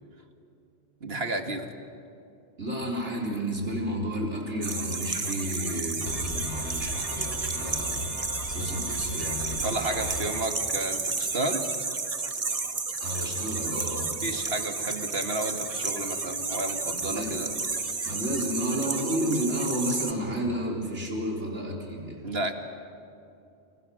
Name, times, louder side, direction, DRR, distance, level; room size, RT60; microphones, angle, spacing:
voice 1, 1.0-1.7 9.6-11.7 14.2-17.5 18.0-18.1 22.2-22.5, right 2 dB, 60° right, 5 dB, 2.1 m, -32 dB
voice 2, 2.6-8.1 8.5-10.2 13.0-14.2 17.0-17.4 18.0-22.2, equal, 80° right, -2 dB, 4.6 m, -31 dB
sound 1, 4.6-20.1, right 4 dB, 35° right, 1.2 m, -32 dB
sound 2, 6.1-10.4, left 1 dB, 90° left, 3.5 m, -38 dB
29.5 x 29.0 x 6.5 m, 2.6 s
omnidirectional pair, 1.2 m